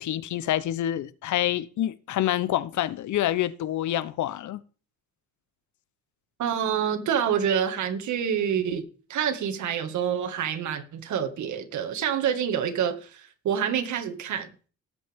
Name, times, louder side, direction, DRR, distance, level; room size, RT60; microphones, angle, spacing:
voice 1, 0.0-4.6, left 12 dB, 70° left, 0.8 m, -27 dB
voice 2, 6.4-8.8 9.1-14.5, right 8 dB, 70° right, 2.0 m, -27 dB
19.0 x 8.4 x 3.6 m
cardioid pair, 90°, 30 cm